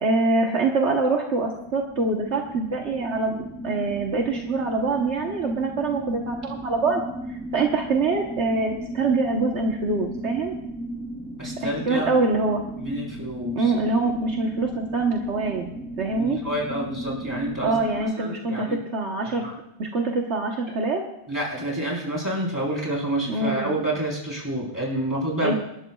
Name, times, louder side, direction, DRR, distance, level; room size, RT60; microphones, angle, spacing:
voice 1, 0.0-7.0 7.3-10.5 11.9-12.6 13.5-15.7 16.0-16.4 17.6-19.4 19.8-21.0 23.3-23.8 25.4-25.5, right 3 dB, 65° right, 0 dB, 1.5 m, -24 dB
sound 1, 1.3-18.0, right 1 dB, 5° left, 2.9 m, -36 dB
voice 2, 11.4-12.1 12.8-13.7 16.2-18.8 19.2-19.5 21.3-25.6, right 1 dB, 15° right, -4 dB, 4.3 m, -28 dB
26.5 x 11.5 x 2.4 m, 0.84 s
omnidirectional pair, 1.3 m